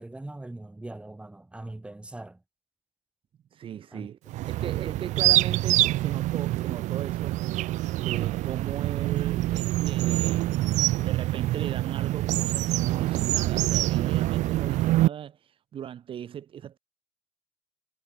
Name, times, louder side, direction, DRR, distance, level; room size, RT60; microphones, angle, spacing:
voice 1, 0.0-2.4 3.9-4.1 4.6-4.7, right 2 dB, 10° right, 2.2 m, -41 dB
voice 2, 3.5-4.2 4.5-7.4 8.0-10.5 11.0-15.4 15.7-16.8, right 9 dB, 45° right, 1.6 m, -38 dB
sound 1, 4.3-15.1, right 16 dB, 75° right, 1.3 m, -25 dB
cardioid pair, 135°, 12 cm